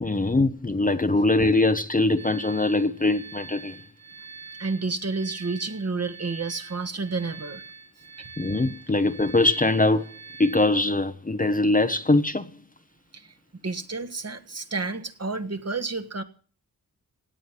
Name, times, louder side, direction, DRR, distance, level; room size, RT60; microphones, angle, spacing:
voice 1, 0.0-3.8 8.4-10.1 10.4-12.5, left 2 dB, 20° left, 0.8 m, -22 dB
sound 1, 2.2-10.7, right 5 dB, 60° right, 4.6 m, -45 dB
voice 2, 4.6-7.6 13.1-13.3 13.6-16.2, right 3 dB, 40° right, 1.4 m, -30 dB
17.0 x 8.7 x 7.3 m
wide cardioid pair, 70°, 37 cm